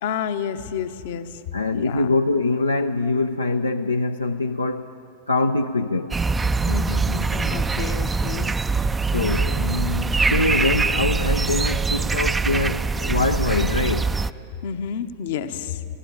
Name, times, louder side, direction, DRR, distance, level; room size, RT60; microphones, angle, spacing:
voice 1, 0.0-1.4 1.7-2.1 6.6-8.5 14.6-15.9, left 7 dB, 55° left, 11 dB, 0.9 m, -30 dB
voice 2, 1.5-4.9 5.3-6.2 9.1-14.1, left 2 dB, 80° left, 5 dB, 0.5 m, -24 dB
sound 1, 6.1-14.3, right 4 dB, 15° right, 0.4 m, -23 dB
21.0 x 16.5 x 8.6 m, 2.7 s
figure-of-eight pair, 90°, 0 cm